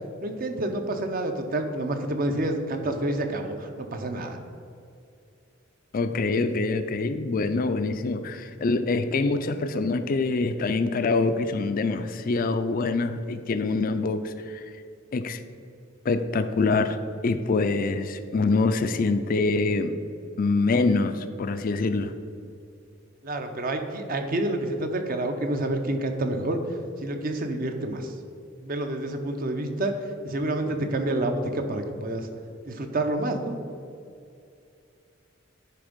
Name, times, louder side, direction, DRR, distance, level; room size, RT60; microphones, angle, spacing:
voice 1, 0.2-4.4 23.2-26.6 27.0-28.1 28.6-29.9 30.2-32.3 32.7-33.5, right 1 dB, 45° right, 6 dB, 0.7 m, -28 dB
voice 2, 5.9-14.6 15.1-15.4 16.0-17.0 17.2-20.0 20.4-22.1, left 3 dB, 45° left, 10 dB, 0.4 m, -25 dB
10.0 x 3.5 x 5.2 m, 2.5 s
head